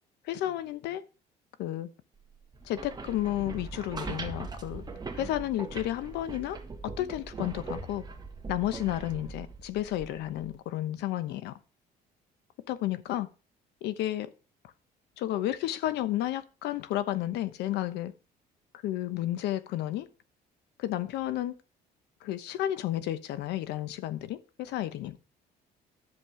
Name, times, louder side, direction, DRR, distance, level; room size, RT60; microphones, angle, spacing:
voice 1, 0.2-1.0 1.6-1.9 2.6-4.8 5.1-6.6 6.8-8.0 8.5-11.5 12.7-13.3 13.8-14.3 15.2-18.1 18.8-20.1 20.8-21.5 22.2-25.2, left 13 dB, 85° left, 1.0 m, -32 dB
sound 1, 2.5-10.6, right 4 dB, 25° right, 1.7 m, -41 dB
11.0 x 7.5 x 4.9 m
cardioid pair, 110°, 17 cm